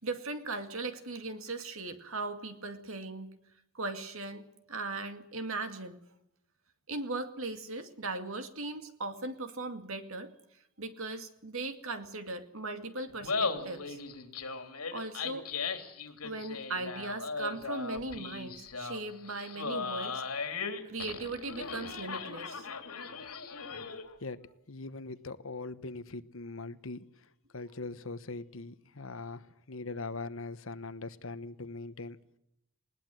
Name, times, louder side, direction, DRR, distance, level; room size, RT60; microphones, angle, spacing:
voice 1, 0.0-3.3 3.7-6.0 6.9-10.3 10.8-14.0 14.9-15.5 16.2-20.2 20.8-22.7, right 3 dB, 65° right, 8 dB, 2.3 m, -38 dB
Laughter, 13.1-24.1, left 4 dB, 80° left, 3.2 m, -37 dB
voice 2, 24.2-27.0 27.5-32.2, left 3 dB, 65° left, 13 dB, 1.1 m, -41 dB
20.5 x 19.5 x 7.8 m, 0.80 s
head